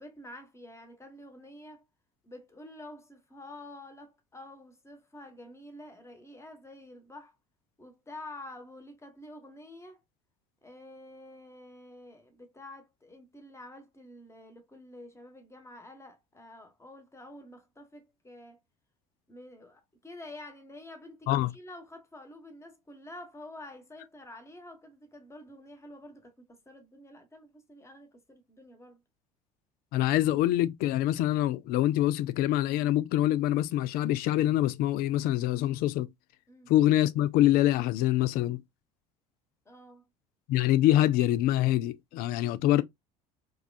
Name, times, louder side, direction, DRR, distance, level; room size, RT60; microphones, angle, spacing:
voice 1, 0.0-1.8 2.2-7.3 7.8-10.0 10.6-18.6 19.3-29.0 36.5-36.7 39.6-40.1, left 1 dB, 15° left, 1.2 m, -48 dB
voice 2, 29.9-36.1 36.7-38.6 40.5-42.8, left 14 dB, 55° left, 0.4 m, -25 dB
4.7 x 2.4 x 2.2 m
hypercardioid pair, 65°, 18 cm